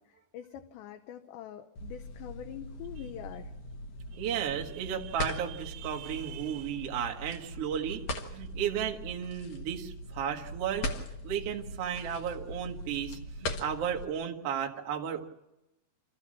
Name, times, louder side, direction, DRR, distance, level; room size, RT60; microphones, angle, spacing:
voice 1, 0.0-3.5, left 11 dB, 80° left, 4 dB, 3.0 m, -44 dB
sound 1, 1.7-14.0, left 1 dB, 60° left, 1.8 m, -40 dB
voice 2, 4.1-10.9 11.2-15.2, right 8 dB, 90° right, 1 dB, 1.3 m, -34 dB
27.5 x 14.0 x 7.5 m, 0.92 s
omnidirectional pair, 5.4 m